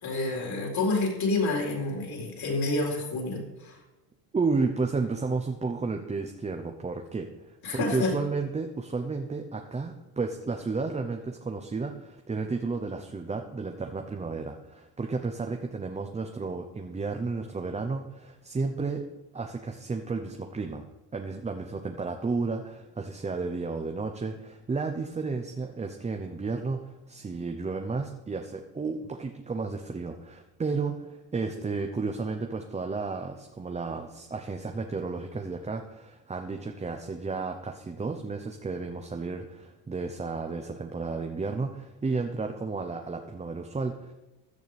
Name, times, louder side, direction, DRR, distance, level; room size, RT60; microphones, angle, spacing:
voice 1, 0.0-3.8 7.6-8.1, left 2 dB, 45° left, -1 dB, 4.6 m, -28 dB
voice 2, 4.3-19.0 19.3-20.9 21.1-44.1, right 4 dB, 15° right, 4 dB, 0.8 m, -32 dB
16.0 x 11.0 x 3.5 m, 1.0 s
supercardioid pair, 115°, 49 cm